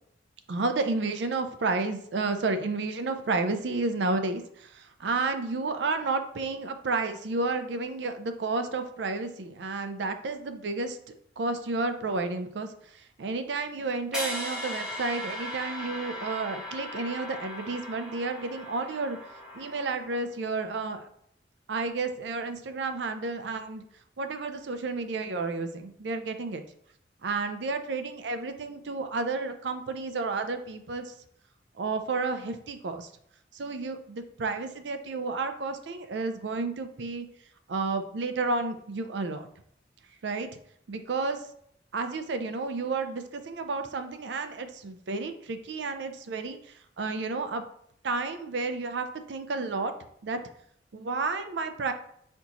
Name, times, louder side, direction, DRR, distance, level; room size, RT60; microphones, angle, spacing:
voice 1, 0.5-11.0 11.4-19.2 19.5-21.1 21.7-23.8 24.2-26.6 27.2-31.1 31.8-33.1 33.5-37.3 37.7-39.5 40.2-40.5 40.9-41.4 41.9-46.6 47.0-47.6 48.0-49.9 50.2-50.4 50.9-51.9, right 3 dB, 75° right, 8 dB, 0.5 m, -31 dB
sound 1, 14.1-20.3, left 1 dB, 5° right, 1.1 m, -38 dB
4.3 x 3.9 x 2.9 m, 0.69 s
head